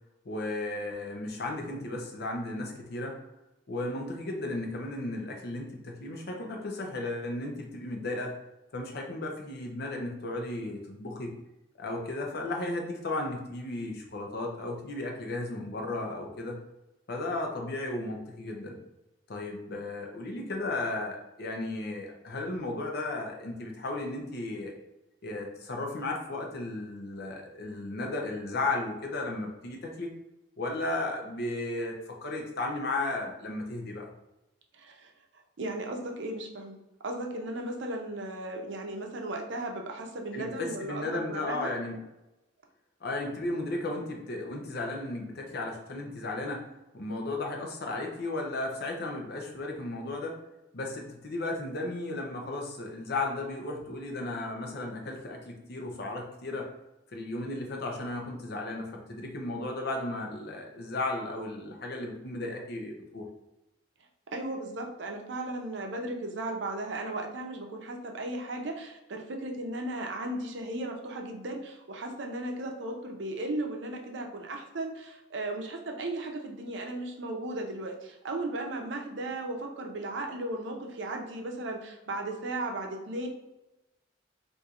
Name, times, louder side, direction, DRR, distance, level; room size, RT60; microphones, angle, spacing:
voice 1, 0.3-3.2 3.7-8.3 8.7-11.3 11.8-16.6 17.1-18.8 19.3-24.7 25.2-30.1 30.6-34.1 40.3-42.0 43.0-46.7 46.9-50.4 50.7-56.7 57.1-63.3, left 2 dB, 60° left, 1 dB, 0.6 m, -34 dB
voice 2, 34.7-35.1 35.6-36.8 37.0-41.7 64.3-83.3, right 2 dB, 70° right, 2 dB, 0.6 m, -36 dB
4.2 x 2.6 x 2.4 m, 0.96 s
head